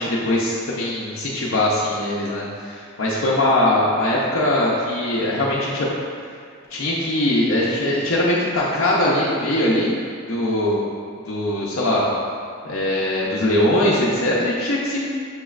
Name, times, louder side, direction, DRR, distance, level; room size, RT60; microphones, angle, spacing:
voice 1, 0.0-5.9 6.7-9.9 10.3-10.8 11.2-12.1 12.6-15.1, left 1 dB, 70° left, -6 dB, 0.6 m, -21 dB
6.4 x 3.1 x 2.4 m, 2.2 s
head